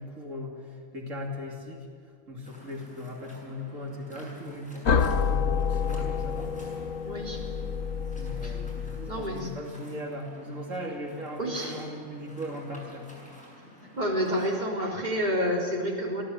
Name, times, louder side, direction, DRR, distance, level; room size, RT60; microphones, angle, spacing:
voice 1, 0.0-1.9 2.3-6.5 8.2-13.1, left 1 dB, 90° right, -1 dB, 3.2 m, -38 dB
Waves surf, 2.4-14.5, equal, 5° left, 7.7 m, -51 dB
sound 1, 4.9-9.6, left 6 dB, 90° left, 1.4 m, -28 dB
voice 2, 7.1-7.4 8.4-8.5 9.1-9.5 11.4-11.7 13.9-16.2, equal, 35° right, -3 dB, 4.1 m, -29 dB
24.0 x 16.5 x 8.4 m, 2.2 s
omnidirectional pair, 1.3 m